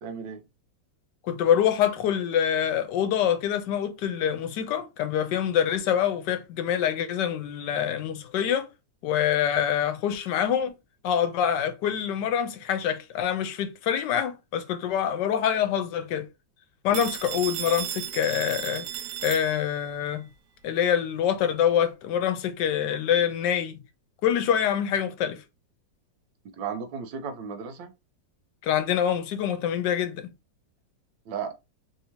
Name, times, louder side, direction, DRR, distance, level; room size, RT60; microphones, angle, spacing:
voice 1, 0.0-0.4 17.0-17.1 26.6-27.9 31.3-31.5, right 6 dB, 90° right, 1.4 m, -34 dB
voice 2, 1.2-8.7 9.0-10.8 11.0-16.3 16.8-18.9 19.2-20.3 20.6-23.8 24.2-25.4 28.6-30.3, left 9 dB, 75° left, 1.2 m, -25 dB
Telephone, 16.9-19.9, right 11 dB, 75° right, 1.2 m, -35 dB
3.4 x 2.7 x 2.8 m
omnidirectional pair, 2.0 m